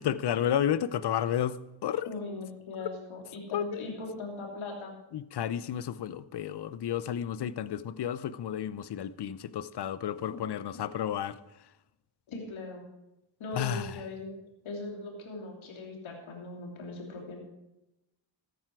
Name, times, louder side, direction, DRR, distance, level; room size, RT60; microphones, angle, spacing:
voice 1, 0.0-2.1 3.5-3.9 5.1-11.7 13.5-14.0, left 10 dB, 55° left, 0.7 m, -32 dB
voice 2, 2.0-5.0 12.3-12.9 13.4-14.3 14.6-17.4, left 3 dB, 80° left, 3.2 m, -39 dB
13.5 x 9.3 x 4.7 m
cardioid pair, 75°, 47 cm